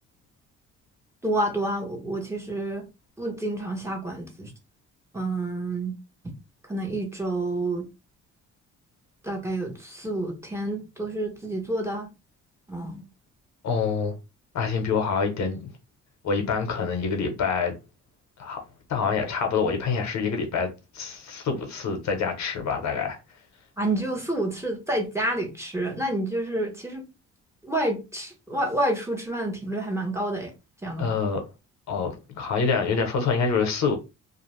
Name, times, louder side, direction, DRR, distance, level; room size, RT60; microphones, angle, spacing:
voice 1, 1.2-2.8 3.2-4.5 5.1-5.9 6.7-7.9 9.2-12.1 12.7-13.0 23.8-27.0 27.6-30.5 30.8-31.2, right 1 dB, 10° right, 1.0 m, -29 dB
voice 2, 13.6-14.1 14.5-15.6 16.2-17.7 18.4-18.6 18.9-20.7 20.9-23.2 31.0-31.4 31.9-33.9, left 5 dB, 65° left, 0.9 m, -26 dB
2.5 x 2.2 x 3.2 m
cardioid pair, 90°, 30 cm